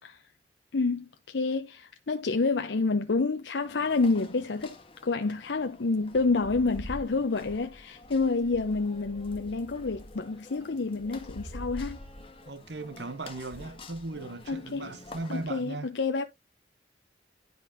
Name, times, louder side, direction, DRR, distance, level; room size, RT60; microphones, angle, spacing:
voice 1, 0.7-4.8 5.0-12.0 14.5-14.9 15.3-16.2, left 3 dB, 80° left, 0.7 m, -28 dB
sound 1, 3.6-15.5, left 1 dB, 30° left, 1.4 m, -46 dB
voice 2, 12.5-15.9, right 2 dB, 75° right, 1.0 m, -38 dB
10.5 x 5.2 x 2.7 m
head